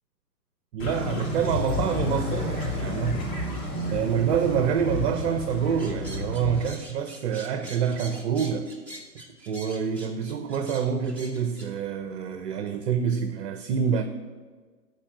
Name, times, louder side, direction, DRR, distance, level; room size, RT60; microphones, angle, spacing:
voice 1, 0.7-3.3 3.9-8.7 9.5-14.0, right 7 dB, 40° right, 0.8 m, -27 dB
sound 1, 0.8-6.7, left 1 dB, 60° left, 3.4 m, -30 dB
sound 2, 5.8-11.7, right 1 dB, 5° left, 1.2 m, -44 dB
13.0 x 4.7 x 7.8 m
hypercardioid pair, 130°, 48 cm